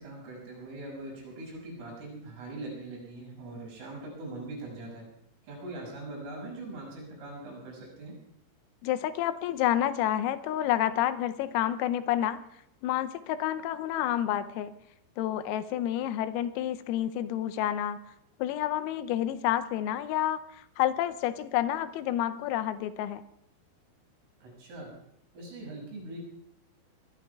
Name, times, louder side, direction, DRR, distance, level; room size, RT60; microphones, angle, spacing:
voice 1, 0.0-5.1 5.5-8.1 24.4-24.9 25.3-26.2, right 2 dB, 80° right, -1 dB, 9.3 m, -41 dB
voice 2, 8.8-12.4 12.8-14.7 15.2-18.0 18.4-23.2, left 12 dB, 90° left, 11 dB, 3.5 m, -29 dB
25.5 x 22.5 x 2.4 m, 0.76 s
omnidirectional pair, 5.9 m